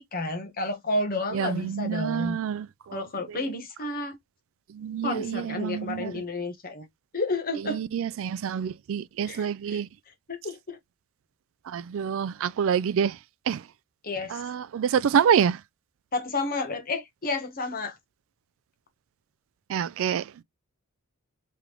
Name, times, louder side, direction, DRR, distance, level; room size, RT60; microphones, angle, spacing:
voice 1, 0.0-2.4 2.9-4.2 5.0-6.9 7.1-7.8 9.2-9.8 10.3-10.8 14.0-14.4 16.1-18.0, left 2 dB, 40° left, 1.1 m, -31 dB
voice 2, 1.3-3.0 3.3-3.5 4.7-6.2 7.6-9.9 11.7-13.2 13.5-13.6 14.3-15.6 19.7-20.4, right 8 dB, 60° right, 0.3 m, -27 dB
3.7 x 3.3 x 3.0 m
head